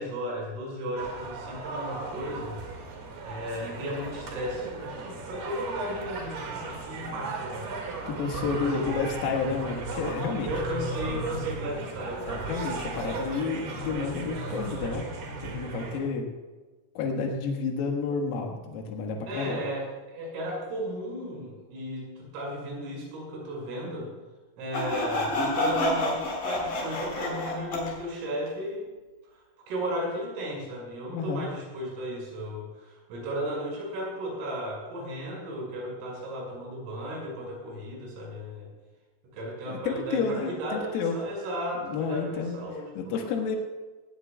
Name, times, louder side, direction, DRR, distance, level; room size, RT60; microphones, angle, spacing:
voice 1, 0.0-2.6 3.2-7.7 8.6-8.7 10.4-12.5 19.3-24.1 24.6-28.9 29.7-38.7 39.3-42.9, equal, 75° right, -3 dB, 8.3 m, -35 dB
sound 1, 1.0-16.0, right 3 dB, 55° right, 3.6 m, -36 dB
voice 2, 8.1-10.5 12.3-15.1 15.4-16.3 17.0-19.6 31.1-31.5 39.7-41.2 41.8-42.6 43.0-43.6, left 5 dB, 80° left, 2 dB, 4.3 m, -30 dB
Sawing, 24.7-27.9, left 1 dB, 40° left, 5.1 m, -28 dB
19.5 x 19.0 x 2.3 m, 1.3 s
omnidirectional pair, 6.0 m